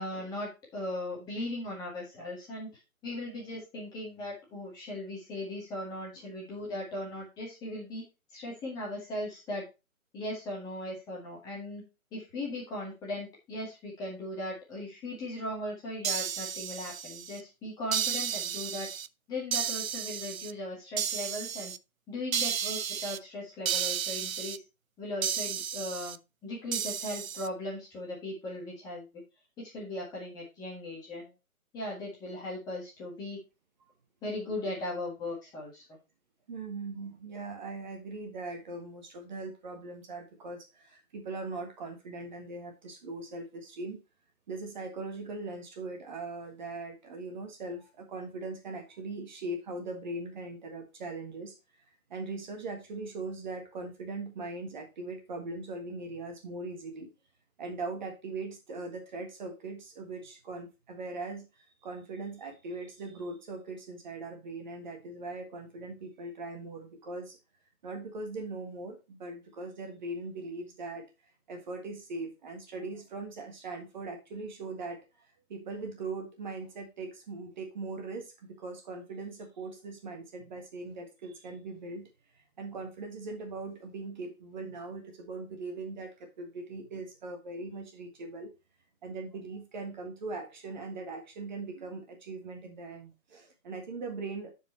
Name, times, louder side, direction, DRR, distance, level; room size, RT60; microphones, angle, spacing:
voice 1, 0.0-2.7 3.0-8.0 8.3-9.7 10.1-11.8 12.1-18.9 19.3-21.7 22.1-24.6 25.0-29.2 29.6-31.3 31.7-33.4 34.2-36.0, left 1 dB, 10° left, -4 dB, 1.6 m, -38 dB
sound 1, 16.0-17.4 17.9-19.1 19.5-20.5 21.0-21.8 22.3-23.2 23.6-24.6 25.2-26.2 26.7-27.5, right 8 dB, 70° right, 0.6 m, -33 dB
voice 2, 36.5-44.0 44.5-51.5 52.1-57.1 57.6-67.4 67.8-71.0 71.5-82.1 82.3-88.5 89.0-94.5, right 3 dB, 30° right, 3 dB, 1.6 m, -40 dB
9.0 x 4.9 x 4.3 m, 0.27 s
figure-of-eight pair, 150°, 43 cm